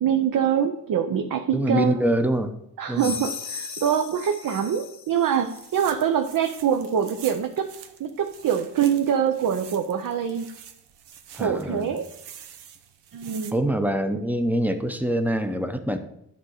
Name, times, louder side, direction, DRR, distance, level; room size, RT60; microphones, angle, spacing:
voice 1, 0.0-1.9 2.8-7.6 8.0-10.5 11.4-12.1 13.1-13.6, right 8 dB, 60° right, 5 dB, 0.7 m, -24 dB
voice 2, 1.5-2.5 2.9-3.2 11.4-11.9 13.5-16.0, right 1 dB, 5° right, 8 dB, 0.7 m, -24 dB
sound 1, 3.0-5.9, left 6 dB, 45° left, 0.8 m, -37 dB
sound 2, 5.3-13.5, right 9 dB, 90° right, 1.0 m, -46 dB
11.0 x 3.7 x 6.5 m, 0.77 s
cardioid pair, 125°, 38 cm